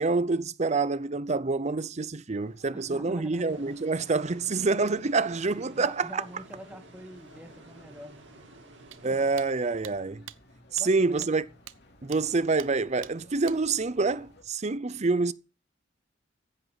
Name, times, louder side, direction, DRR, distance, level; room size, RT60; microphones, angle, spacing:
voice 1, 0.0-6.2 9.0-10.3 10.7-11.4 12.0-15.3, right 3 dB, 35° right, 0.6 m, -27 dB
sound 1, 2.3-14.4, left 1 dB, 60° left, 3.2 m, -57 dB
voice 2, 2.7-3.8 5.7-8.3 9.0-9.2 10.8-11.3, equal, 10° right, 1.9 m, -46 dB
sound 2, 3.4-10.0, right 2 dB, 65° right, 2.9 m, -53 dB
sound 3, 8.9-9.0 9.4-9.5 9.8-9.9 10.3-10.4 10.8-10.9 11.2-11.3 11.7-11.8 12.1-12.2 12.6-12.7 13.0-13.1 13.5-13.6, right 12 dB, 85° right, 0.7 m, -43 dB
15.0 x 11.0 x 4.1 m
head